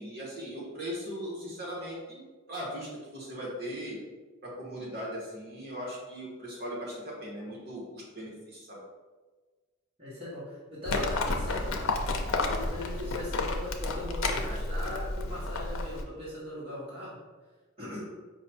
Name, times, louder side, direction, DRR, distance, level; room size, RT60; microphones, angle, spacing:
voice 1, 0.0-2.2 2.5-4.0 4.4-8.8, equal, 45° right, -5 dB, 1.2 m, -39 dB
voice 2, 10.0-11.7 12.4-17.2 17.8-18.0, left 1 dB, 25° right, -9 dB, 1.0 m, -39 dB
Livestock farm animals working animals, 10.9-16.0, left 2 dB, 75° left, 0.5 m, -31 dB
4.9 x 2.2 x 4.2 m, 1.3 s
head